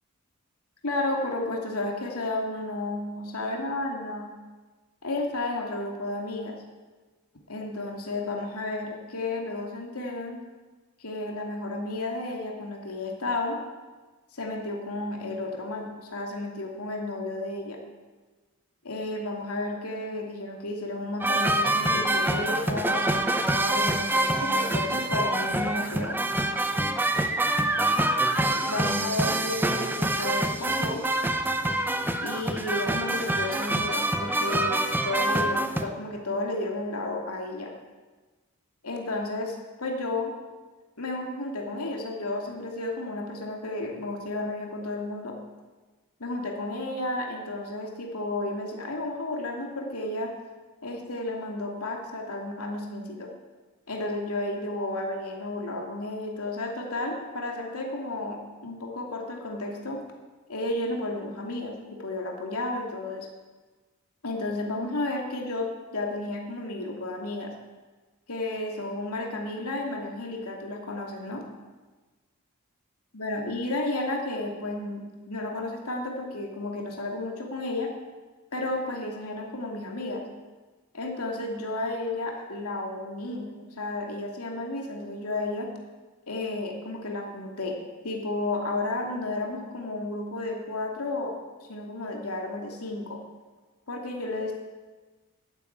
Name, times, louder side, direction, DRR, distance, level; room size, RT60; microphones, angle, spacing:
voice 1, 0.8-4.3 5.0-6.6 7.5-10.4 11.0-13.6 14.3-17.8 18.8-26.2 28.5-31.0 32.2-37.7 38.8-40.3 41.0-45.3 46.2-50.3 50.8-53.3 53.9-60.0 60.5-63.3 64.2-67.5 68.3-71.4 73.1-77.9 78.5-80.2 80.9-85.7 86.3-87.8 88.0-91.4 91.6-93.2 93.9-94.5, left 2 dB, 80° left, 0 dB, 2.6 m, -32 dB
sound 1, 21.2-35.9, right 1 dB, 10° right, 0.7 m, -26 dB
12.0 x 10.5 x 8.7 m, 1.3 s
head